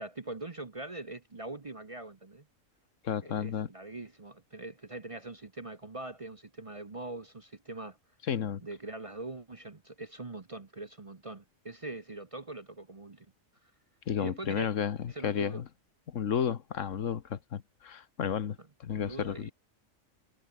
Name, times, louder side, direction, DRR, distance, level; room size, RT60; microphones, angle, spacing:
voice 1, 0.0-2.5 3.2-8.0 8.6-13.3 14.2-14.7 15.1-15.6 18.6-18.7 18.9-19.5, right 2 dB, 30° right, 0.9 m, -42 dB
voice 2, 3.0-3.7 8.3-8.6 14.1-15.6 16.1-19.5, left 8 dB, 65° left, 1.4 m, -32 dB
omnidirectional pair, 1.4 m